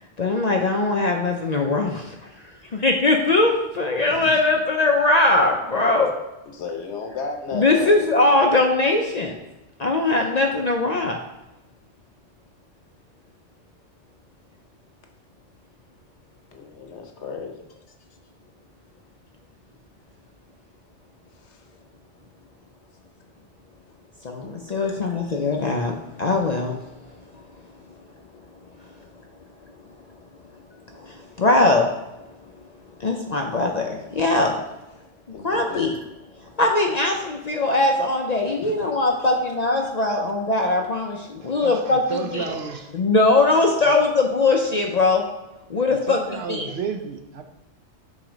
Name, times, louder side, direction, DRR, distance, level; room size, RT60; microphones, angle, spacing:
voice 1, 0.2-2.0 2.7-6.1 7.5-9.3 9.8-11.2 24.2-26.8 31.4-31.9 33.0-34.6 35.4-36.0 36.6-42.6 42.9-45.3 45.7-46.7, left 2 dB, 50° left, 2 dB, 0.5 m, -21 dB
voice 2, 4.1-4.4 6.5-8.1 16.5-17.7 21.5-21.6 35.3-35.9 38.6-38.9 39.8-39.9, left 4 dB, 75° left, 3 dB, 1.2 m, -34 dB
voice 3, 41.4-42.9 43.8-43.9 46.1-47.4, right 5 dB, 65° right, 7 dB, 0.8 m, -31 dB
7.4 x 2.9 x 5.0 m, 1.0 s
omnidirectional pair, 1.2 m